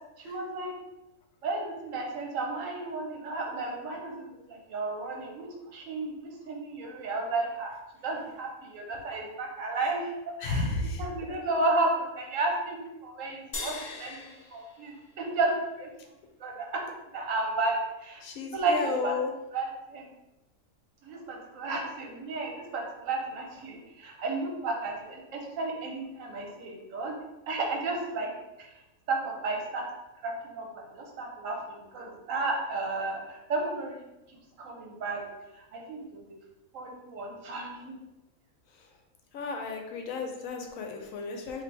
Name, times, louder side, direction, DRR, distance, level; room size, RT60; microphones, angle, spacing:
voice 1, 0.2-0.7 1.4-7.7 8.0-10.1 10.4-10.7 11.0-15.9 16.4-16.8 17.1-18.2 18.5-18.8 19.0-19.1 19.5-20.1 21.0-27.2 27.5-28.3 28.6-28.7 29.1-29.9 30.2-34.0 34.6-35.2 35.6-36.4 36.7-38.0, right 3 dB, 65° right, 1 dB, 1.2 m, -33 dB
voice 2, 10.4-11.4 13.6-14.3 18.2-19.3 38.7-38.9 39.3-41.6, left 4 dB, 75° left, 3 dB, 1.0 m, -34 dB
sound 1, 13.5-16.1, left 3 dB, 45° left, 0.6 m, -42 dB
3.3 x 2.7 x 4.1 m, 0.99 s
omnidirectional pair, 1.5 m